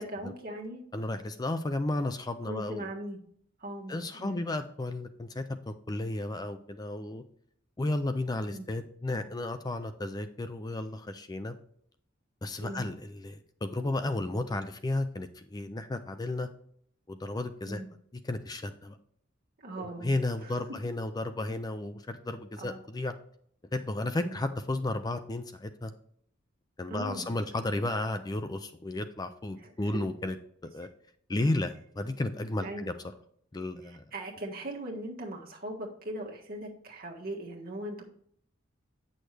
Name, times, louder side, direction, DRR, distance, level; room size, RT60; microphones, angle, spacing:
voice 1, 0.0-0.8 2.5-3.2 3.6-4.4 8.5-8.7 12.6-12.9 17.6-17.9 19.6-20.1 20.4-20.6 22.6-22.8 24.2-24.4 26.9-27.3 29.6-30.0 32.6-32.9 33.8-38.0, right 1 dB, 45° right, -1 dB, 1.6 m, -39 dB
voice 2, 0.9-2.9 3.9-7.2 7.8-11.6 12.4-16.5 17.1-17.8 18.2-19.0 19.8-23.1 23.7-25.9 26.8-30.4 30.6-30.9 31.3-32.9 33.5-34.1, left 2 dB, 20° left, 9 dB, 0.4 m, -33 dB
8.9 x 6.4 x 3.3 m, 0.65 s
head